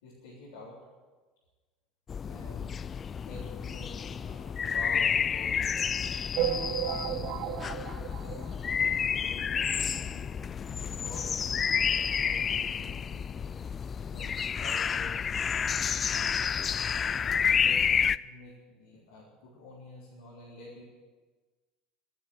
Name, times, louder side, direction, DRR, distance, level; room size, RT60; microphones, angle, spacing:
voice 1, 0.0-0.8 2.3-2.8 3.2-7.3 9.1-13.6 14.1-15.3 16.3-17.2 17.5-20.9, left 2 dB, 75° left, -5 dB, 3.7 m, -49 dB
sound 1, 2.1-18.2, left 7 dB, 35° left, 0.4 m, -30 dB
sound 2, 6.4-9.2 9.7-9.8 10.0-10.1 10.4-10.5 11.4-11.5 11.9-12.0, right 11 dB, 60° right, 0.7 m, -34 dB
12.0 x 11.5 x 9.0 m, 1.3 s
hypercardioid pair, 75°, 0 cm